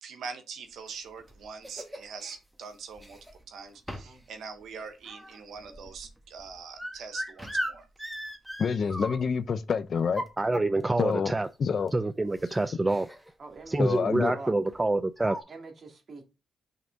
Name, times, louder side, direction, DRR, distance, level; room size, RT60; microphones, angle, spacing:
voice 1, 0.0-3.2 3.5-7.9, right 5 dB, 80° right, 1.0 m, -43 dB
sound 1, 0.9-2.4 3.0-3.5 3.9-4.3 4.6-9.5 10.0-11.0 11.9-12.0 12.3-12.5 12.9-13.3 13.6-13.8 14.7-14.8 15.2-15.4, equal, 5° right, 1.3 m, -38 dB
voice 2, 8.6-10.2 11.0-11.3 11.6-11.9 13.8-14.3, left 6 dB, 60° left, 0.6 m, -27 dB
voice 3, 10.4-11.5 11.9-13.1 13.7-15.4, right 2 dB, 25° right, 0.4 m, -26 dB
voice 4, 13.4-14.6 15.5-16.3, right 3 dB, 55° right, 2.2 m, -45 dB
5.8 x 3.5 x 5.1 m
cardioid pair, 60°, 0 cm